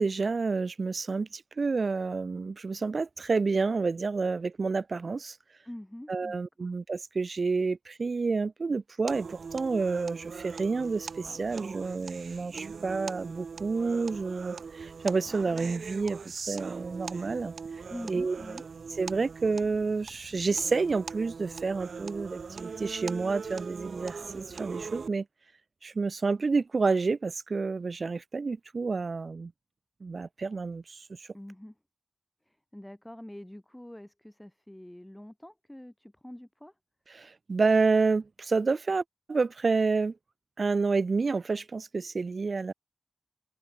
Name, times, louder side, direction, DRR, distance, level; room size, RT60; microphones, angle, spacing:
voice 1, 0.0-5.4 6.1-16.2 16.5-17.5 18.1-18.4 19.0-25.2 25.8-29.5 30.0-31.0 37.1-40.1 40.6-42.7, right 4 dB, 65° right, 0.6 m, -29 dB
voice 2, 5.7-6.5 17.9-18.6 31.3-31.7 32.5-36.7, left 1 dB, 10° left, 1.3 m, -45 dB
sound 1, 9.1-25.1, right 5 dB, 90° right, 2.3 m, -41 dB
open air
wide cardioid pair, 65°, 0 cm